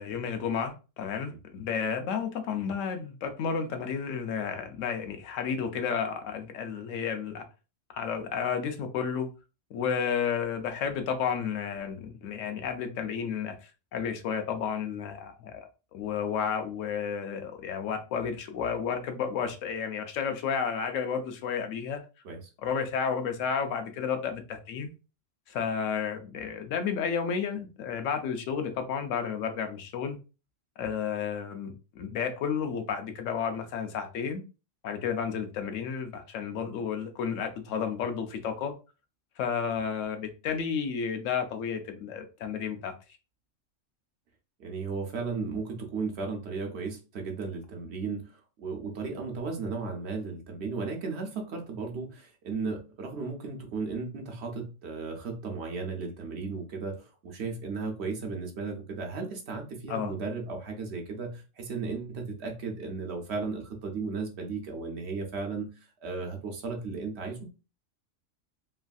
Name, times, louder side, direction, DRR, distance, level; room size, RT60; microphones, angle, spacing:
voice 1, 0.0-7.4 7.9-9.3 9.7-15.7 15.9-22.0 22.6-24.9 25.5-30.2 30.8-34.4 34.8-38.7 39.4-42.9 59.9-60.1, left 6 dB, 90° left, 1.0 m, -32 dB
voice 2, 44.6-65.7 66.0-67.5, right 4 dB, 65° right, 0.9 m, -35 dB
3.1 x 2.5 x 2.3 m
omnidirectional pair, 1.3 m